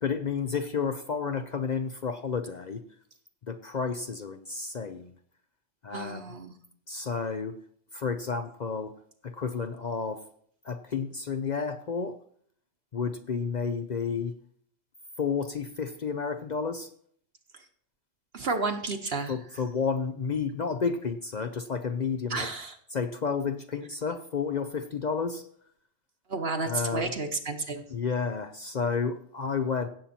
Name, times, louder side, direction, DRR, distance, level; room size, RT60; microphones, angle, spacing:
voice 1, 0.0-2.8 3.4-5.1 5.8-6.3 6.9-7.6 7.9-9.0 9.2-10.2 10.6-12.2 12.9-14.4 15.2-16.9 19.3-22.5 22.9-25.5 26.6-27.1 27.9-29.9, left 5 dB, 50° left, 9 dB, 0.6 m, -31 dB
voice 2, 5.9-6.6 18.3-19.3 22.3-22.7 26.3-27.8, right 3 dB, 55° right, 6 dB, 1.1 m, -31 dB
16.5 x 7.4 x 4.3 m, 0.62 s
omnidirectional pair, 1.3 m